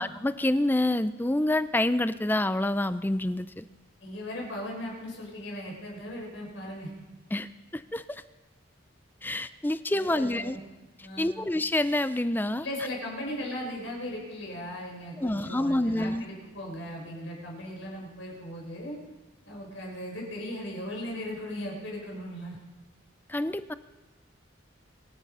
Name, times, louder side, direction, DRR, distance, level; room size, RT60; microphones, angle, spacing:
voice 1, 0.0-3.6 7.3-8.2 9.2-10.6 11.2-12.7 15.2-16.3 23.3-23.7, left 1 dB, 10° left, 13 dB, 0.4 m, -27 dB
voice 2, 4.0-6.9 9.9-10.6 11.0-11.4 12.6-19.0 19.5-22.6, left 1 dB, 80° left, -1 dB, 5.2 m, -37 dB
24.5 x 9.8 x 5.5 m, 1.2 s
head